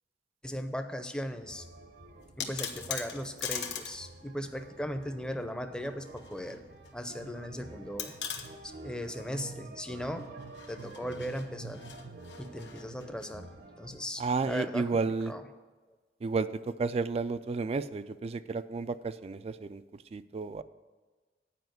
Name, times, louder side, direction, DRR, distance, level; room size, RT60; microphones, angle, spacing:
voice 1, 0.4-1.6 2.4-6.6 6.9-8.1 8.8-10.3 10.7-11.8 12.4-13.5 13.8-14.9 15.3-15.5, equal, 5° left, 7 dB, 0.6 m, -37 dB
sound 1, 1.4-14.0, right 2 dB, 60° right, 0.9 m, -49 dB
sound 2, 2.2-4.0 4.3-4.4 5.8-6.6 6.9-7.0 8.0-8.5 10.4-13.3, left 8 dB, 80° left, 1.0 m, -40 dB
voice 2, 14.2-15.3 16.2-19.8 20.1-20.6, right 4 dB, 35° right, 14 dB, 0.3 m, -32 dB
9.3 x 5.1 x 7.8 m, 1.3 s
head